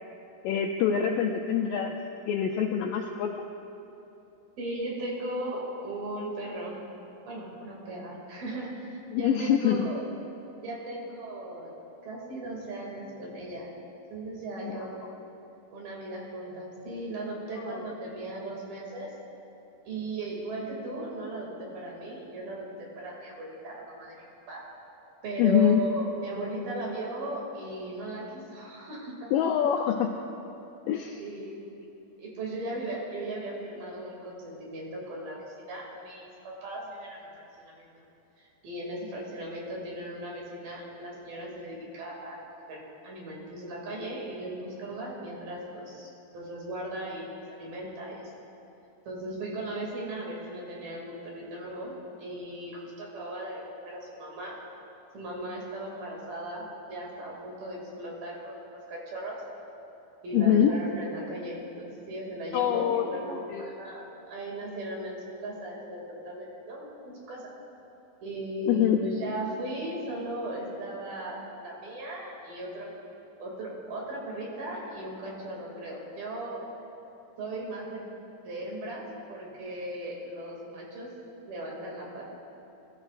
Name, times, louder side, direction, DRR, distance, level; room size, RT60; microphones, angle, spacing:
voice 1, 0.4-2.0 2.3-3.3 9.1-9.9 14.6-14.8 17.6-17.9 25.4-25.8 29.3-30.1 30.9-31.2 60.3-60.7 62.5-63.7 68.7-69.0, left 9 dB, 85° left, 3 dB, 1.9 m, -25 dB
voice 2, 4.6-6.8 7.3-10.0 10.6-11.7 12.1-13.7 14.1-15.1 15.7-19.1 19.8-24.6 25.2-29.3 31.2-31.6 32.2-38.0 38.4-42.4 42.7-48.3 49.1-54.6 55.1-59.4 60.2-67.5 68.2-72.9 73.4-76.6 77.4-78.0 78.4-81.1 81.5-82.3, right 1 dB, 65° right, -3 dB, 4.3 m, -37 dB
24.0 x 12.5 x 2.5 m, 2.9 s
omnidirectional pair, 4.6 m